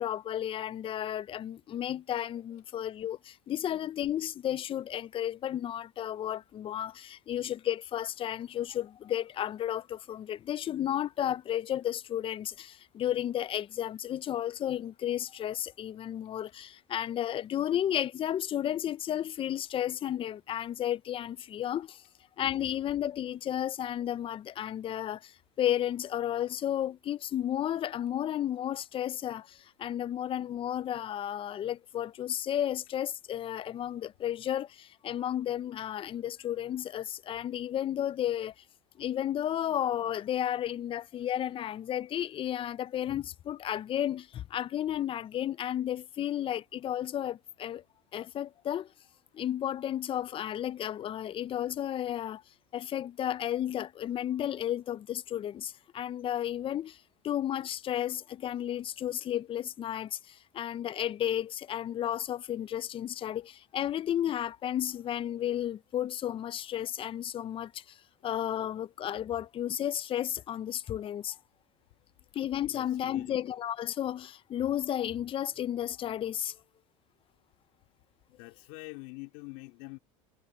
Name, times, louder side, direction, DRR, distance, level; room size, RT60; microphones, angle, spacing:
voice 1, 0.0-22.0 22.4-38.5 39.0-47.8 48.1-48.9 49.3-52.4 52.7-57.0 57.2-68.0 68.2-71.4 72.3-76.6, left 11 dB, 30° left, 0.6 m, -33 dB
voice 2, 72.7-73.4 78.3-80.0, left 26 dB, 70° left, 3.3 m, -45 dB
supercardioid pair, 110°, 17 cm